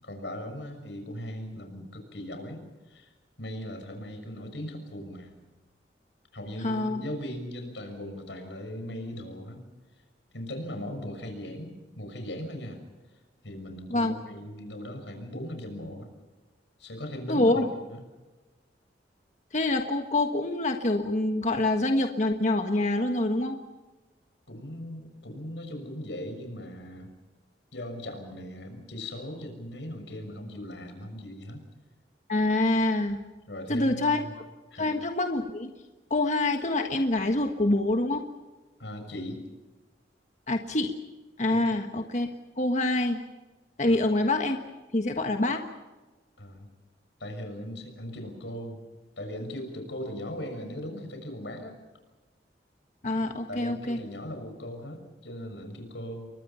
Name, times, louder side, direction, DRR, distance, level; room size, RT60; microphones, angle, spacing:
voice 1, 0.0-3.1 3.4-5.4 6.3-9.7 10.3-12.8 13.4-16.1 16.8-18.0 24.5-27.1 27.7-31.6 33.5-34.3 34.7-34.9 38.8-39.4 41.6-41.7 43.8-44.0 46.4-46.7 47.2-48.8 49.2-51.8 53.2-56.3, left 1 dB, 90° left, 6 dB, 6.4 m, -39 dB
voice 2, 6.6-7.0 13.9-14.1 17.3-17.7 19.5-23.6 32.3-33.2 33.7-34.4 34.8-35.7 36.1-38.2 40.5-40.9 41.4-42.3 42.6-43.2 43.8-44.6 44.9-45.6 53.0-54.0, left 2 dB, 40° left, 5 dB, 1.5 m, -26 dB
29.5 x 23.5 x 5.7 m, 1.2 s
head